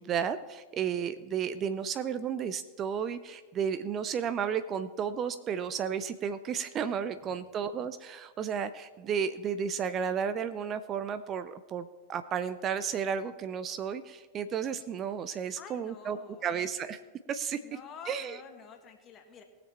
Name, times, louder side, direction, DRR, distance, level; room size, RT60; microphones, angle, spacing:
voice 1, 0.0-16.2 16.4-17.0 17.3-17.6 18.1-18.4, right 7 dB, 30° right, 12 dB, 0.5 m, -33 dB
voice 2, 15.6-16.7 17.6-19.4, left 6 dB, 30° left, 4 dB, 1.7 m, -49 dB
19.5 x 6.8 x 4.4 m, 1.3 s
figure-of-eight pair, 90°, 0 cm